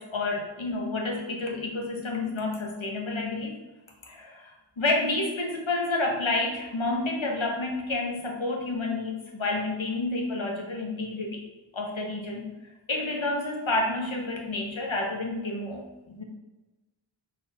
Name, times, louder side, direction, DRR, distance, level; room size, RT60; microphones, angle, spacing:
voice 1, 0.0-3.5 4.1-11.4 11.7-12.5 12.9-16.2, left 2 dB, 75° left, -1 dB, 1.6 m, -29 dB
7.0 x 4.4 x 5.0 m, 1.1 s
wide cardioid pair, 65°, 47 cm